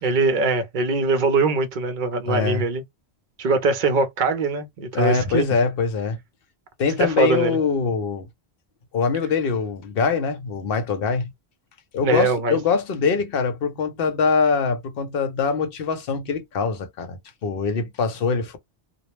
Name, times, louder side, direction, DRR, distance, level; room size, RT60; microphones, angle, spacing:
voice 1, 0.0-2.8 3.4-5.5 7.0-7.6 12.0-12.6, right 3 dB, 55° right, 0.7 m, -22 dB
voice 2, 2.3-2.6 4.9-6.2 6.8-8.3 8.9-11.3 11.9-18.6, left 5 dB, 65° left, 0.8 m, -23 dB
2.3 x 2.0 x 3.0 m
omnidirectional pair, 1.1 m